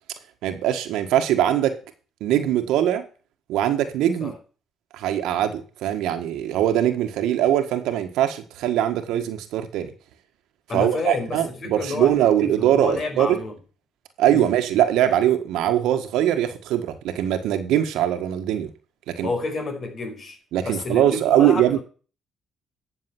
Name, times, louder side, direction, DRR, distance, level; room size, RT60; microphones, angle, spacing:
voice 1, 0.4-1.8 2.2-3.1 3.5-4.3 4.9-9.9 10.7-13.4 14.2-18.7 19.1-19.3 20.5-21.8, right 11 dB, 85° right, 1.6 m, -22 dB
voice 2, 10.7-12.1 12.4-13.6 14.3-14.5 19.2-21.8, left 3 dB, 50° left, 5.3 m, -30 dB
11.0 x 7.1 x 6.1 m
cardioid pair, 80°, 0 cm